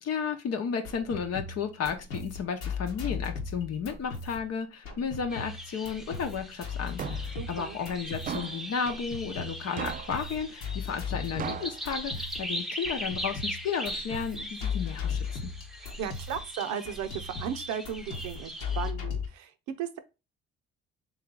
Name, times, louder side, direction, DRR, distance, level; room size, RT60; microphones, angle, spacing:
voice 1, 0.0-15.5, left 6 dB, 60° left, 0.8 m, -33 dB
sound 1, 0.7-19.3, left 5 dB, 90° left, 1.1 m, -37 dB
sound 2, 5.3-18.9, equal, ahead, 0.7 m, -40 dB
sound 3, 7.0-7.4 8.3-8.7 9.8-10.2 11.4-11.8, right 8 dB, 30° right, 0.3 m, -36 dB
voice 2, 7.4-7.8 15.8-19.5 19.8-20.0, right 8 dB, 80° right, 0.6 m, -36 dB
3.4 x 3.1 x 3.7 m
supercardioid pair, 60°, 29 cm